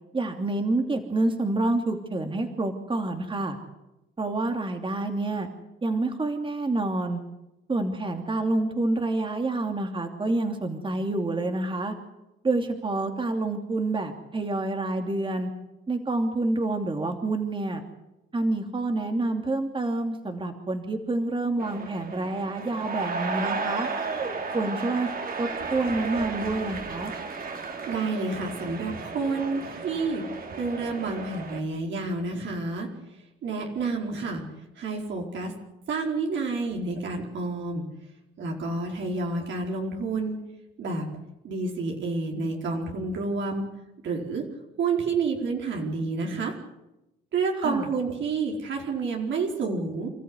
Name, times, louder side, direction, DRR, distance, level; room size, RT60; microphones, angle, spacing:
voice 1, 0.1-3.5 4.2-5.5 5.8-7.2 7.7-11.9 12.4-15.5 15.9-17.8 18.3-23.9 24.5-25.1 25.4-27.1 47.6-47.9, right 2 dB, 25° right, 5 dB, 2.8 m, -28 dB
sound 1, 21.6-31.6, right 4 dB, 45° right, 3.5 m, -34 dB
voice 2, 27.9-30.2 30.6-32.9 33.4-34.4 34.8-35.5 35.9-37.8 38.4-40.4 40.8-41.1 41.4-43.6 44.0-44.4 44.8-46.5 47.3-50.1, right 3 dB, 70° right, 0 dB, 4.7 m, -29 dB
29.0 x 14.0 x 9.8 m, 0.95 s
cardioid pair, 90°, 20 cm